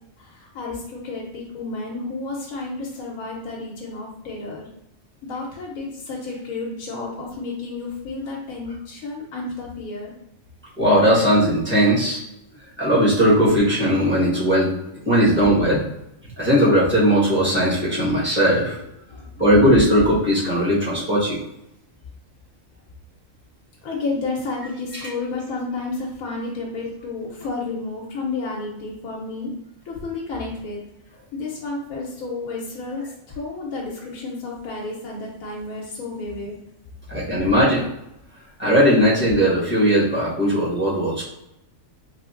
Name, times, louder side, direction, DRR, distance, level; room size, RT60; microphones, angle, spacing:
voice 1, 0.2-4.7 5.2-10.1 19.1-19.3 23.8-29.5 29.9-30.8 31.3-36.6, left 3 dB, 85° left, -2 dB, 1.2 m, -31 dB
voice 2, 10.8-12.2 12.8-14.7 15.0-15.8 16.4-18.7 19.4-21.4 37.1-37.9 38.6-41.2, equal, 10° right, -9 dB, 1.2 m, -18 dB
3.4 x 3.2 x 2.5 m, 0.83 s
omnidirectional pair, 1.4 m